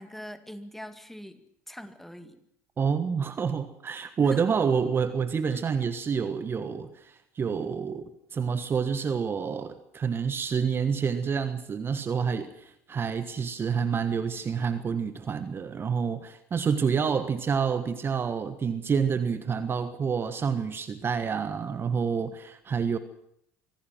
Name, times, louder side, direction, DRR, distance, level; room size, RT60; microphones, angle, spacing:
voice 1, 0.0-2.4 4.2-4.5 5.5-5.6, equal, 5° left, 10 dB, 2.2 m, -43 dB
voice 2, 2.8-23.0, right 6 dB, 30° right, 11 dB, 1.4 m, -28 dB
24.5 x 16.5 x 7.7 m, 0.74 s
hypercardioid pair, 70°, 7 cm